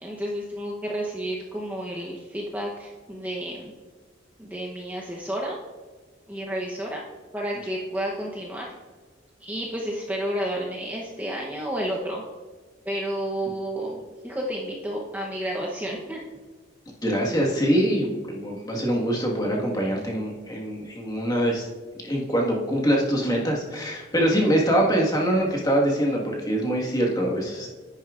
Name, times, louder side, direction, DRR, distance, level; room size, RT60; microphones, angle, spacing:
voice 1, 0.0-3.7 4.4-5.6 6.3-7.0 7.3-8.7 9.4-12.2 12.8-16.2, right 1 dB, 10° right, -3 dB, 0.8 m, -31 dB
voice 2, 17.0-21.7 22.0-27.7, equal, 20° left, -1 dB, 1.5 m, -24 dB
10.0 x 9.7 x 2.4 m, 1.4 s
head